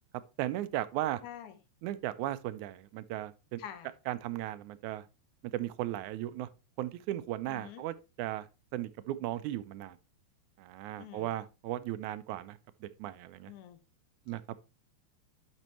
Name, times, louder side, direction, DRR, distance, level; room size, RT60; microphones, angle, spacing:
voice 1, 0.4-1.2 1.8-3.6 4.1-5.1 5.5-6.5 6.8-10.0 10.6-13.5 14.3-14.4, right 14 dB, 85° right, 2.0 m, -36 dB
voice 2, 1.2-1.6 3.6-3.9 7.5-7.8 11.0-11.3 13.5-13.8, left 10 dB, 90° left, 2.4 m, -46 dB
11.0 x 5.4 x 3.0 m
omnidirectional pair, 3.4 m